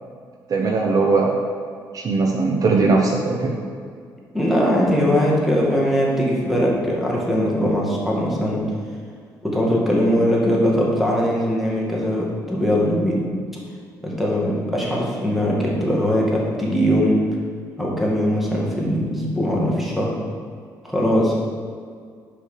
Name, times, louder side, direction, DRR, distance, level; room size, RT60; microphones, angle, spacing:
voice 1, 0.5-1.4 1.9-3.6, right 3 dB, 50° right, 1 dB, 0.8 m, -19 dB
voice 2, 4.3-8.6 9.4-13.2 14.0-17.2 17.8-20.1 20.8-21.3, equal, ahead, -4 dB, 2.0 m, -20 dB
5.5 x 5.3 x 6.6 m, 2.1 s
cardioid pair, 95°, 8 cm